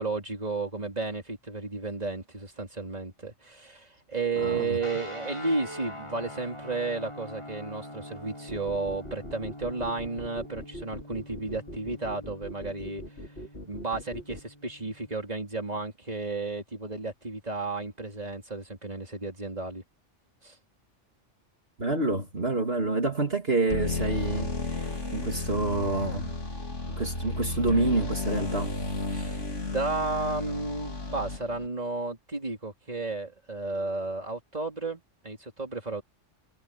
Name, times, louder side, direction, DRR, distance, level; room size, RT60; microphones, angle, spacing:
voice 1, 0.0-13.0 13.6-19.8 20.4-20.6 29.1-36.0, right 3 dB, 35° right, 4.0 m, -33 dB
voice 2, 4.4-4.8 21.8-26.3 27.0-28.7, right 2 dB, 55° right, 3.3 m, -28 dB
sound 1, 4.8-15.1, equal, 25° left, 6.0 m, -44 dB
sound 2, 8.5-14.4, left 1 dB, 55° left, 4.5 m, -42 dB
sound 3, 23.7-31.7, left 2 dB, 75° left, 3.7 m, -32 dB
omnidirectional pair, 1.2 m